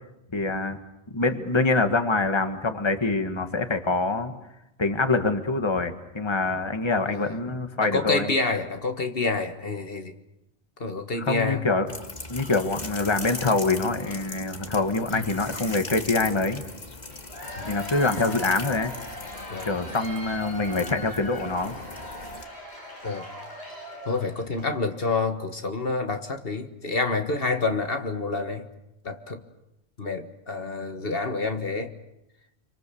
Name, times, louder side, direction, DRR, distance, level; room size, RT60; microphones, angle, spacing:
voice 1, 0.3-0.8 1.1-4.3 4.8-8.3 11.2-11.9 12.3-16.6 17.7-18.9 19.6-21.7, left 3 dB, 25° left, 7 dB, 1.6 m, -25 dB
voice 2, 7.1-7.4 7.8-10.1 10.8-11.7 15.1-15.4 17.6-17.7 19.5-19.7 23.0-23.3 24.1-28.7 29.0-29.4 30.0-31.9, left 3 dB, 60° left, 5 dB, 1.8 m, -28 dB
sound 1, 11.9-22.5, left 2 dB, 40° left, 1.9 m, -39 dB
Cheering / Applause / Crowd, 17.1-24.7, equal, 90° left, 6.8 m, -39 dB
27.0 x 25.0 x 7.0 m, 0.89 s
omnidirectional pair, 1.1 m